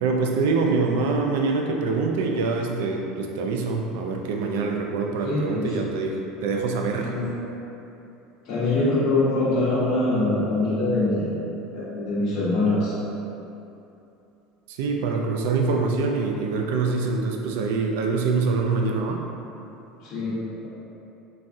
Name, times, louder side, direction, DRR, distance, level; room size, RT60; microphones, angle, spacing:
voice 1, 0.0-7.1 14.7-19.2, right 4 dB, 85° right, 2 dB, 0.3 m, -25 dB
voice 2, 5.2-5.8 7.0-7.3 8.4-11.4 11.7-12.9 20.0-20.4, left 2 dB, 55° left, -11 dB, 0.9 m, -23 dB
3.9 x 2.3 x 2.5 m, 2.8 s
cardioid pair, 150°, 0 cm